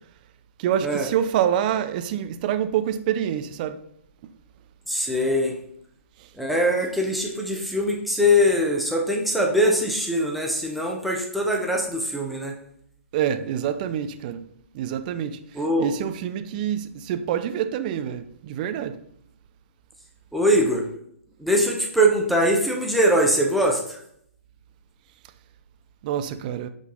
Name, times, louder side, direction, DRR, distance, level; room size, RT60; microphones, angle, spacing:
voice 1, 0.6-3.8 4.2-4.3 13.1-14.4 14.7-15.4 15.8-19.0 26.0-26.7, right 9 dB, 35° right, 0.5 m, -26 dB
voice 2, 4.9-5.5 6.4-12.5 15.5-15.9 20.3-20.8 21.4-24.0, equal, ahead, 1.0 m, -22 dB
8.3 x 3.9 x 3.8 m
figure-of-eight pair, 125°, 8 cm